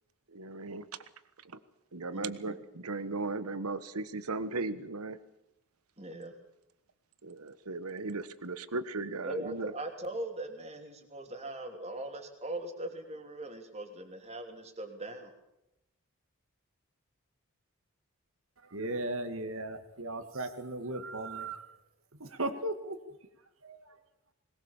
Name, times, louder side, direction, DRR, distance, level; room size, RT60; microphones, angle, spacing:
voice 1, 0.3-0.9 1.4-1.6 1.9-5.2 7.2-9.7, right 3 dB, 85° right, 13 dB, 1.4 m, -37 dB
voice 2, 2.1-2.6 6.0-6.3 9.2-15.3, right 1 dB, 30° right, 5 dB, 2.9 m, -40 dB
voice 3, 18.6-21.8 22.1-23.2 23.6-24.0, right 2 dB, 70° right, 8 dB, 2.1 m, -37 dB
21.0 x 20.0 x 7.2 m, 0.89 s
head